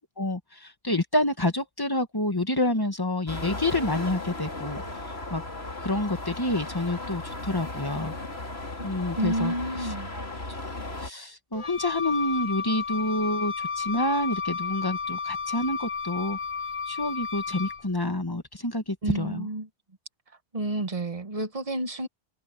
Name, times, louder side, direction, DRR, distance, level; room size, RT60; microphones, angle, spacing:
voice 1, 0.2-4.8 5.3-5.4 5.8-8.1 8.8-9.5 9.8-10.3 10.6-16.4 16.9-19.5, left 1 dB, 20° left, 1.5 m, -28 dB
sound 1, 3.3-11.1, left 2 dB, 65° left, 3.8 m, -36 dB
voice 2, 9.2-10.1 19.0-19.7 20.5-22.1, right 1 dB, 35° right, 1.3 m, -30 dB
Wind instrument woodwind instrument, 11.5-17.9, left 5 dB, 45° left, 0.4 m, -32 dB
omnidirectional pair, 1.1 m